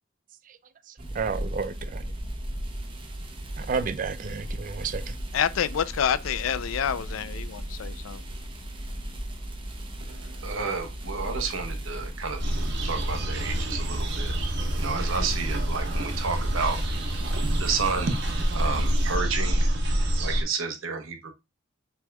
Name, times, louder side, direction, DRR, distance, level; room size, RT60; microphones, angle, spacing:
sound 1, 1.0-19.2, right 1 dB, 25° right, 0.8 m, -36 dB
voice 1, 1.1-2.0 3.6-5.1, right 5 dB, 40° right, 0.4 m, -31 dB
voice 2, 5.3-8.2, left 8 dB, 90° left, 0.4 m, -27 dB
voice 3, 10.1-12.4 12.8-14.4 14.7-17.1 17.6-19.7 20.2-21.3, right 5 dB, 85° right, 1.0 m, -31 dB
sound 2, 12.4-20.4, right 1 dB, 55° right, 1.1 m, -27 dB
6.0 x 3.5 x 2.2 m
head